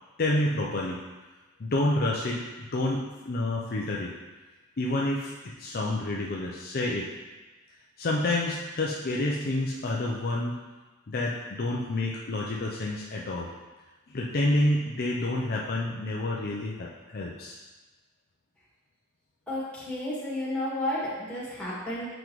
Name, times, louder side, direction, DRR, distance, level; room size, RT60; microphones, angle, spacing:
voice 1, 0.2-1.0 1.6-4.1 4.8-7.1 8.0-10.6 11.1-13.5 14.1-17.6, left 1 dB, 45° left, -2 dB, 0.6 m, -29 dB
voice 2, 19.5-22.1, left 1 dB, 5° left, -9 dB, 2.1 m, -32 dB
7.8 x 5.1 x 3.1 m, 1.2 s
head